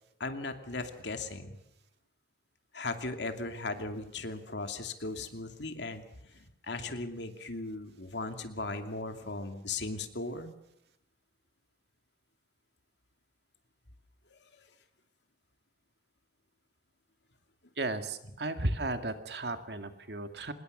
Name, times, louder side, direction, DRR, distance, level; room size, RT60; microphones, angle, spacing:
voice 1, 0.2-1.6 2.7-6.0 6.3-10.5, left 3 dB, 75° left, 6 dB, 2.7 m, -37 dB
voice 2, 17.8-20.5, right 2 dB, 65° right, 8 dB, 2.1 m, -34 dB
25.0 x 20.5 x 6.7 m, 0.82 s
head